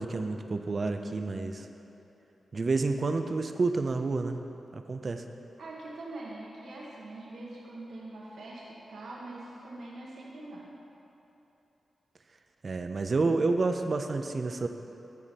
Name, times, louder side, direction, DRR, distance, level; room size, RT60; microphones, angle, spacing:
voice 1, 0.0-1.7 2.5-4.4 4.7-5.2 12.6-14.7, right 3 dB, 50° right, 7 dB, 0.6 m, -29 dB
voice 2, 5.6-10.7, right 2 dB, 75° right, -4 dB, 1.2 m, -43 dB
15.0 x 5.0 x 4.2 m, 3.0 s
cardioid pair, 55°, 0 cm